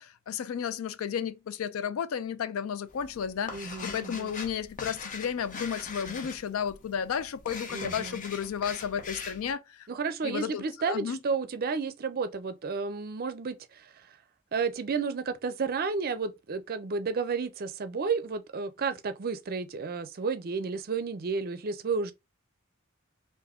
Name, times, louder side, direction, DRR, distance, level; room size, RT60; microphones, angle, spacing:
voice 1, 0.0-9.9 10.2-11.2, left 8 dB, 70° left, 0.4 m, -33 dB
sound 1, 2.9-9.5, left 4 dB, 40° left, 0.7 m, -42 dB
voice 2, 3.5-4.3 7.7-8.2 9.9-13.9 14.5-22.1, right 5 dB, 45° right, 0.5 m, -32 dB
3.5 x 2.6 x 3.5 m
head